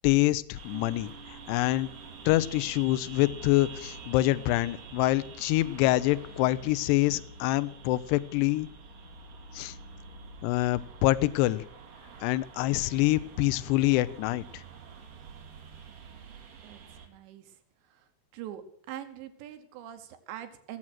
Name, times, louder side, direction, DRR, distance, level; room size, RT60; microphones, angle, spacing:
voice 1, 0.0-1.9 2.3-8.7 9.5-9.8 10.4-11.6 12.2-14.6, left 17 dB, 80° left, 14 dB, 2.7 m, -26 dB
sound 1, 0.6-17.1, right 5 dB, 60° right, 4.1 m, -48 dB
sound 2, 0.7-8.5, right 5 dB, 40° right, 6.3 m, -56 dB
sound 3, 3.2-11.2, left 1 dB, 5° right, 2.9 m, -50 dB
voice 2, 16.6-17.5 17.9-18.0 18.3-18.6 18.9-20.8, right 11 dB, 80° right, 7 dB, 3.4 m, -43 dB
17.0 x 7.7 x 6.1 m, 0.70 s
omnidirectional pair, 5.1 m